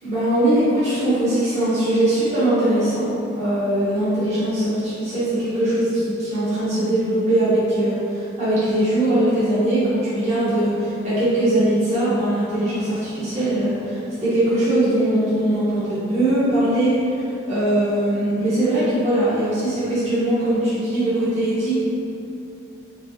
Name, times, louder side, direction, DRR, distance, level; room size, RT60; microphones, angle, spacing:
voice 1, 0.0-3.1 3.3-21.7, right 1 dB, 35° right, -14 dB, 1.4 m, -21 dB
4.7 x 2.9 x 2.8 m, 2.8 s
head